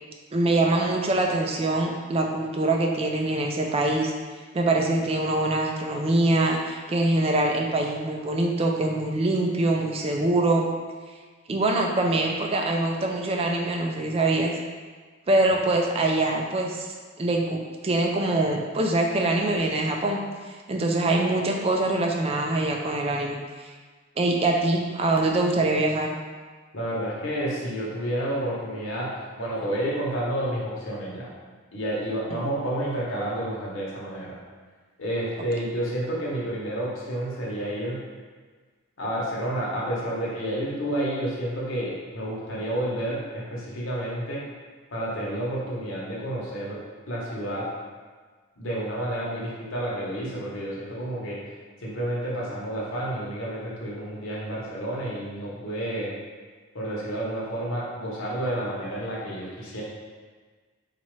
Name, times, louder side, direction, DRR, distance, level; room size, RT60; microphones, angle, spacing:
voice 1, 0.3-4.1 4.5-10.6 11.5-14.5 15.3-16.9 17.2-20.2 20.7-23.4 24.2-26.1, right 2 dB, 30° right, 1 dB, 0.4 m, -24 dB
voice 2, 26.7-31.3 31.7-34.4 35.0-38.0 39.0-44.4 44.9-46.8 47.1-47.7 48.6-51.4 51.8-56.1 56.7-59.8, right 1 dB, 70° left, -5 dB, 1.0 m, -30 dB
4.1 x 2.4 x 3.1 m, 1.5 s
head